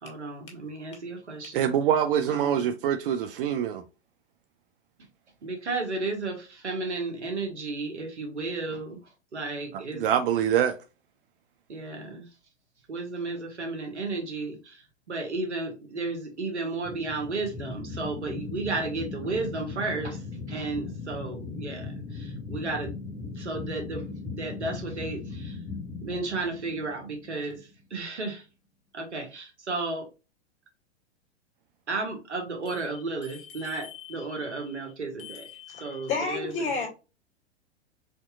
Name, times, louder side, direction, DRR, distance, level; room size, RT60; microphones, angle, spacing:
voice 1, 0.0-1.7 2.3-2.7 5.4-9.0 9.3-10.0 11.7-12.3 12.9-25.6 26.0-28.4 28.9-30.1 31.9-35.5 35.7-36.9, right 3 dB, 90° right, 1.5 m, -33 dB
voice 2, 1.5-3.8 9.9-10.8, right 9 dB, 55° right, 0.5 m, -24 dB
sound 1, 16.8-27.8, left 4 dB, 5° left, 0.7 m, -38 dB
voice 3, 33.2-34.7 35.2-36.9, left 4 dB, 35° left, 2.0 m, -34 dB
4.4 x 2.8 x 2.3 m
hypercardioid pair, 105°, 34 cm